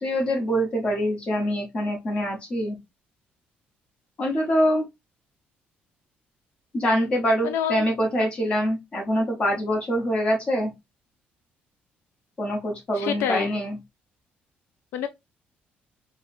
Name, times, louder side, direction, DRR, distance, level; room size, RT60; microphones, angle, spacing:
voice 1, 0.0-2.8 4.2-4.8 6.7-10.7 12.4-13.8, equal, 30° left, 1.2 m, -24 dB
voice 2, 7.4-7.8 12.9-13.6 14.9-15.1, left 9 dB, 90° left, 0.4 m, -27 dB
4.6 x 2.2 x 2.6 m
cardioid pair, 165°, 4 cm